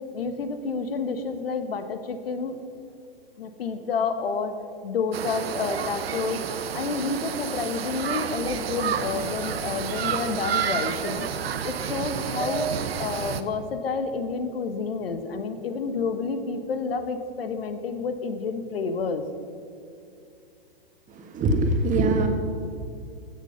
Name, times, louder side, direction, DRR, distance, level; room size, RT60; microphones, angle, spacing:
voice 1, 0.1-2.6 3.4-4.5 4.8-6.4 6.7-11.3 11.6-19.2, left 4 dB, 75° left, 9 dB, 1.3 m, -29 dB
sound 1, 5.1-13.4, right 8 dB, 80° right, 0.9 m, -30 dB
voice 2, 21.1-22.3, right 2 dB, 25° right, 4 dB, 1.6 m, -22 dB
15.5 x 6.7 x 5.7 m, 2.4 s
hypercardioid pair, 120°, 30 cm